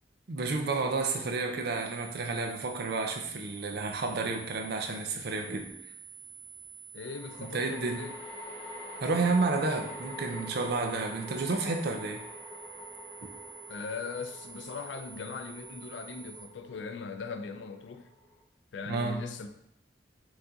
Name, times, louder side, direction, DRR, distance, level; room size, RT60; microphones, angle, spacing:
voice 1, 0.3-5.7 7.4-8.0 9.0-12.2 18.9-19.2, right 3 dB, 60° right, 0.6 m, -31 dB
sound 1, 1.7-16.5, right 6 dB, 15° right, 0.3 m, -49 dB
voice 2, 6.9-8.2 13.7-18.1 18.7-19.5, left 4 dB, 75° left, 0.4 m, -40 dB
sound 2, 7.0-18.4, left 1 dB, 15° left, 0.7 m, -46 dB
4.6 x 2.7 x 3.7 m
head